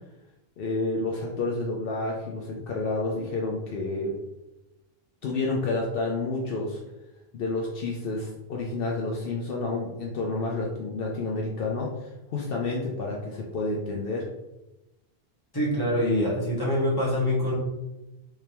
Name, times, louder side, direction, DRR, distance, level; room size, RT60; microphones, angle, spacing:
voice 1, 0.6-4.2 5.2-6.8 7.3-14.3, left 3 dB, 70° left, -2 dB, 0.7 m, -30 dB
voice 2, 15.5-17.5, left 1 dB, 25° left, -6 dB, 1.2 m, -25 dB
3.3 x 3.3 x 2.9 m, 0.98 s
omnidirectional pair, 1.0 m